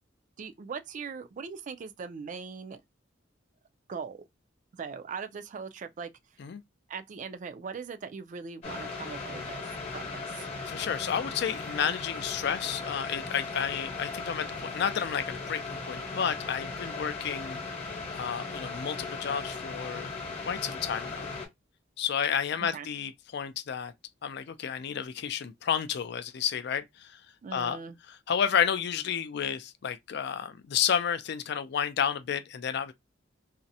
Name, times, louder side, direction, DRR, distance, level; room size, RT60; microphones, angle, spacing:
voice 1, 0.4-2.8 3.9-4.2 4.7-6.1 6.9-10.5 22.7-22.9 27.4-28.0, right 5 dB, 40° right, 0.3 m, -40 dB
sound 1, 8.6-21.5, left 3 dB, 40° left, 0.9 m, -38 dB
voice 2, 10.7-15.6 15.9-17.6 18.1-20.1 20.5-21.3 22.0-23.9 24.2-27.2 27.5-27.8 28.1-32.9, left 8 dB, 60° left, 0.4 m, -31 dB
2.4 x 2.0 x 2.6 m
head